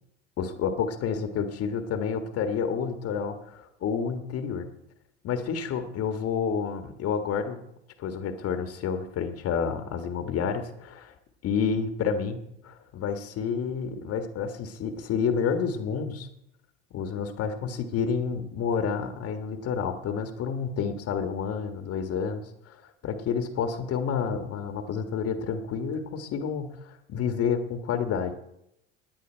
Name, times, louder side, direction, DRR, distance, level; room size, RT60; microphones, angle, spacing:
voice 1, 0.4-4.6 5.2-7.6 8.0-11.1 11.4-16.3 16.9-22.8 23.0-28.3, left 6 dB, 50° left, 7 dB, 1.5 m, -29 dB
17.5 x 9.8 x 4.5 m, 0.81 s
hypercardioid pair, 80°, 31 cm